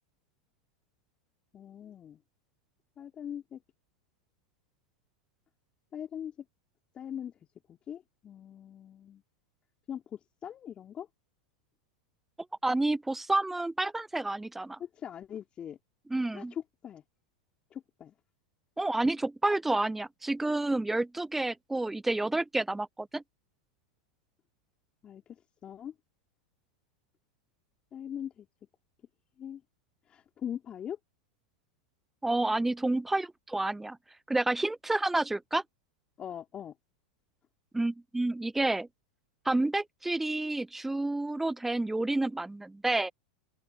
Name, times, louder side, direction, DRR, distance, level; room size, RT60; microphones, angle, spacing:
voice 1, 1.5-2.2 3.0-3.6 5.9-6.3 6.9-7.3 7.7-9.2 9.9-11.1 14.8-15.8 16.3-17.0 17.7-18.1 25.0-25.2 25.6-25.9 27.9-28.5 29.4-29.6 30.1-31.0 36.2-36.7, left 9 dB, 30° left, 3.8 m, -41 dB
voice 2, 12.6-14.8 16.1-16.5 18.8-23.2 32.2-34.0 34.3-35.6 37.7-38.9 39.5-43.1, right 2 dB, 5° right, 0.4 m, -29 dB
open air
hypercardioid pair, 95°, 3 cm